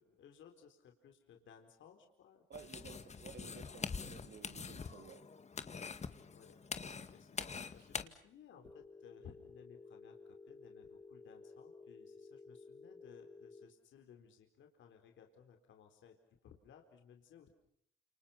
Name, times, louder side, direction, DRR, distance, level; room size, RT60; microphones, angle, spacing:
voice 1, 0.0-3.5 6.3-16.2 16.4-17.5, left 8 dB, 75° left, 4 dB, 4.2 m, -60 dB
sound 1, 2.5-8.0, left 5 dB, 35° left, 2.0 m, -44 dB
voice 2, 2.5-5.2, right 6 dB, 55° right, 7 dB, 3.5 m, -54 dB
Telephone, 8.6-13.6, left 3 dB, 10° left, 3.1 m, -55 dB
30.0 x 28.5 x 5.8 m, 0.71 s
cardioid pair, 90°, 20 cm